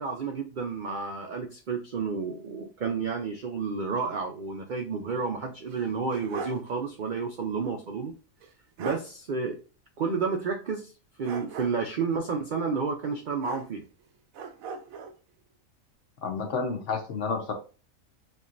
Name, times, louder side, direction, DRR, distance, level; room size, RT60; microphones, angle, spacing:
voice 1, 0.0-8.1 8.8-9.6 10.0-10.9 11.2-13.8, right 5 dB, 70° right, 4 dB, 0.4 m, -31 dB
sound 1, 5.7-6.7 7.0-7.1 8.4-8.5 8.8-9.1 11.2-12.0 13.4-14.0 14.3-15.2, right 5 dB, 90° right, 1.1 m, -38 dB
voice 2, 16.2-17.5, left 4 dB, 65° left, 4 dB, 1.1 m, -30 dB
4.3 x 3.0 x 2.5 m, 0.36 s
omnidirectional pair, 1.4 m